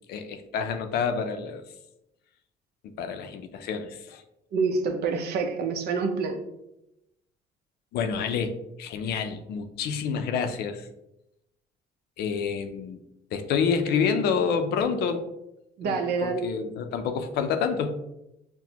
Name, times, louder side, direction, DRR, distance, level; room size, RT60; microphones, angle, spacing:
voice 1, 0.1-1.6 2.8-4.2 7.9-10.9 12.2-13.0 13.3-15.2 15.8-18.0, left 6 dB, 75° left, 8 dB, 0.5 m, -28 dB
voice 2, 4.5-6.4 15.8-16.5, right 4 dB, 70° right, 5 dB, 0.7 m, -27 dB
5.8 x 2.1 x 2.9 m, 0.87 s
cardioid pair, 110°, 17 cm